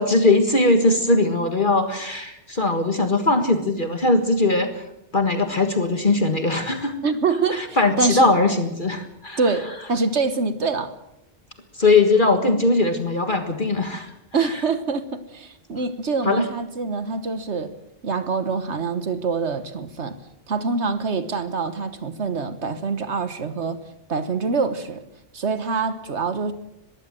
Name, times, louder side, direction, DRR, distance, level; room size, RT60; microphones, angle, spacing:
voice 1, 0.0-4.8 5.1-6.9 7.5-9.4 11.7-14.1 14.4-14.6 16.2-16.5, left 2 dB, 45° left, 6 dB, 1.8 m, -20 dB
voice 2, 7.0-8.3 9.4-10.9 14.3-17.7 18.0-20.2 20.5-23.8 24.1-25.0 25.3-26.5, right 4 dB, 70° right, 10 dB, 1.6 m, -25 dB
21.5 x 15.5 x 7.7 m, 0.85 s
omnidirectional pair, 1.2 m